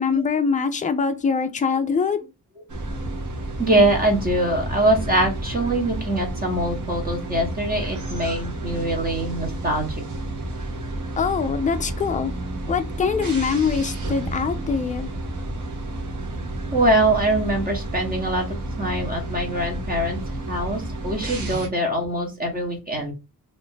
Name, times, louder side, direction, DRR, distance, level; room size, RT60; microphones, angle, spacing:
voice 1, 0.0-2.2 11.2-12.3 12.7-15.1, left 5 dB, 25° left, 0.3 m, -23 dB
sound 1, 2.7-21.7, right 1 dB, 55° right, 0.9 m, -31 dB
voice 2, 3.6-10.0 16.7-20.2 20.5-23.1, right 1 dB, 25° right, 0.8 m, -23 dB
2.6 x 2.4 x 3.6 m
wide cardioid pair, 165°, 36 cm